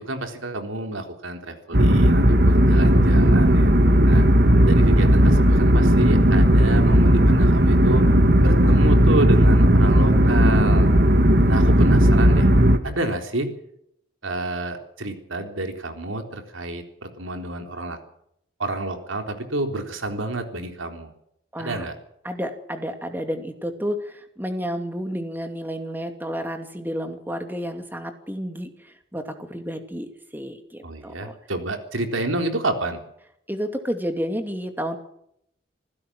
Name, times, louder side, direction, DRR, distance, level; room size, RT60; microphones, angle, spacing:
voice 1, 0.0-3.8 4.0-4.3 4.7-8.0 8.4-10.9 11.5-12.5 12.8-13.5 14.2-18.0 18.6-21.1 21.6-21.9 30.8-33.0, right 2 dB, 90° right, 5 dB, 3.8 m, -29 dB
sound 1, 1.7-12.8, equal, 55° right, 1.9 m, -15 dB
voice 2, 21.5-21.9 22.2-31.3 33.5-35.0, equal, 10° right, 6 dB, 2.5 m, -31 dB
26.0 x 16.0 x 6.3 m, 0.74 s
head